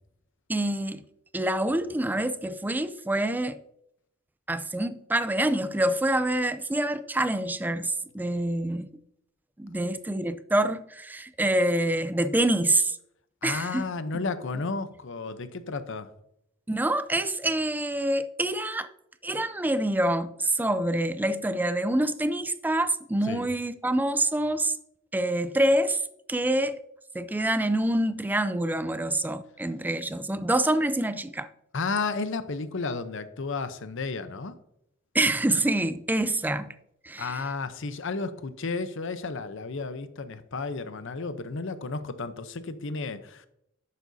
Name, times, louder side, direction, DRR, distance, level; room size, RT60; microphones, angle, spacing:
voice 1, 0.5-1.0 1.3-3.6 4.5-8.9 9.6-13.0 13.4-13.8 14.1-14.2 16.7-18.9 19.2-24.7 25.1-26.0 26.3-26.8 27.1-31.5 35.1-36.7 37.0-37.3, right 1 dB, 10° right, 0.4 m, -26 dB
voice 2, 13.4-16.1 23.2-23.5 31.7-34.5 37.2-43.5, left 4 dB, 65° left, 0.8 m, -32 dB
11.0 x 8.4 x 2.7 m
head